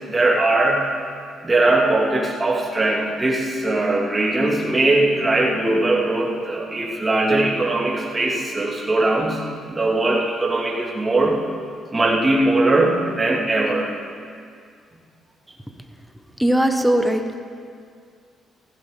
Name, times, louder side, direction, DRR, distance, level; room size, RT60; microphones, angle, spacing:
voice 1, 0.1-0.9 1.4-9.4 9.7-11.4 11.9-13.9, right 2 dB, 20° right, -4 dB, 2.6 m, -20 dB
voice 2, 16.4-17.4, right 1 dB, ahead, 5 dB, 1.2 m, -19 dB
15.5 x 15.0 x 3.9 m, 2.2 s
cardioid pair, 90°, 0 cm